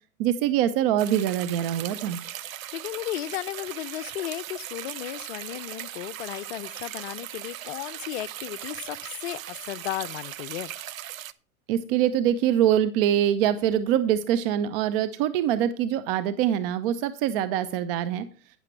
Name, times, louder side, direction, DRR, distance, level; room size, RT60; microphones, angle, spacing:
voice 1, 0.2-2.2 11.7-18.3, right 10 dB, 40° right, 0.8 m, -24 dB
sound 1, 1.0-11.3, right 12 dB, 65° right, 0.9 m, -38 dB
voice 2, 2.7-10.7, left 15 dB, 45° left, 0.6 m, -35 dB
11.5 x 9.8 x 3.3 m
hypercardioid pair, 110°, 44 cm